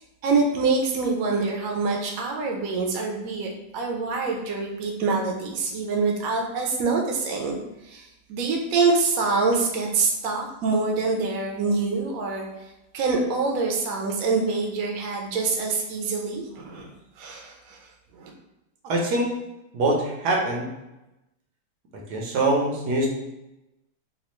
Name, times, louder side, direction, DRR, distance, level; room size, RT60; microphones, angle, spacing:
voice 1, 0.2-7.6 7.8-12.5 12.9-16.9 17.2-17.8 18.1-18.3, right 4 dB, 65° right, 1 dB, 1.0 m, -25 dB
voice 2, 18.8-19.3 19.7-20.7 22.1-23.1, right 2 dB, 80° right, 0 dB, 1.3 m, -23 dB
4.1 x 2.4 x 3.0 m, 0.96 s
omnidirectional pair, 1.7 m